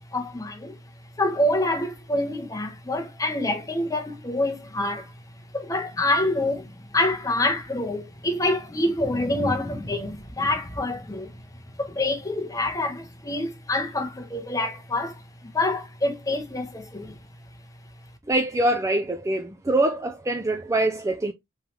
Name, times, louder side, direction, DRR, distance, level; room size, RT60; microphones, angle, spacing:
voice 1, 0.1-0.8 1.2-5.1 5.5-11.4 11.8-17.2, left 1 dB, 15° left, 0.7 m, -26 dB
voice 2, 18.3-21.3, right 1 dB, 15° right, 0.3 m, -24 dB
3.7 x 3.1 x 2.9 m
head